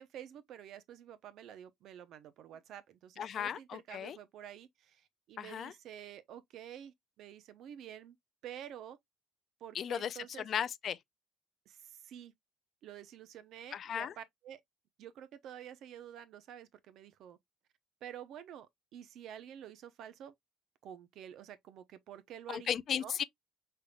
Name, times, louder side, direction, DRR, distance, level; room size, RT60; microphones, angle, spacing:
voice 1, 0.0-8.2 8.4-9.0 9.6-10.5 11.7-12.3 12.8-14.6 15.0-17.4 18.0-20.3 20.8-22.7 23.0-23.2, right 10 dB, 55° right, 0.6 m, -49 dB
voice 2, 3.2-4.2 5.4-5.7 9.7-11.0 13.7-14.1 22.5-23.2, left 8 dB, 40° left, 0.3 m, -36 dB
5.5 x 3.4 x 2.3 m
cardioid pair, 155°, 0 cm